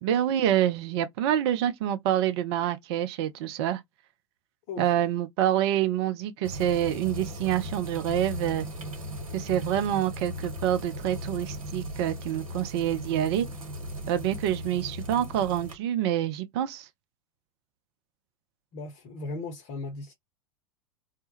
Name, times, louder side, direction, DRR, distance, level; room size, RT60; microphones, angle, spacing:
voice 1, 0.0-3.8 4.8-8.7 9.3-13.5 14.1-16.9, right 11 dB, 50° right, 0.5 m, -27 dB
sound 1, 6.4-15.7, equal, 85° right, 0.8 m, -37 dB
voice 2, 18.7-20.1, left 3 dB, 45° left, 0.7 m, -37 dB
2.2 x 2.0 x 2.9 m
figure-of-eight pair, 90°, 17 cm